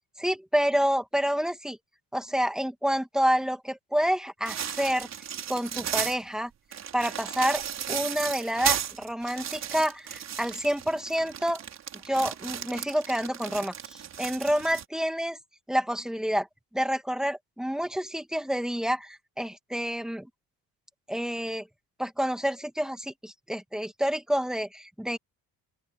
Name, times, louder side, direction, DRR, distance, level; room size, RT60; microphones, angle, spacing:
voice 1, 0.2-1.8 2.1-5.1 5.5-6.5 6.9-7.6 7.9-11.6 12.0-15.4 15.7-16.5 16.7-20.3 21.1-21.7 22.0-25.2, equal, ahead, 2.2 m, -28 dB
sound 1, 4.5-6.2 6.7-14.8, right 9 dB, 45° right, 4.4 m, -34 dB
open air
cardioid pair, 150°, 36 cm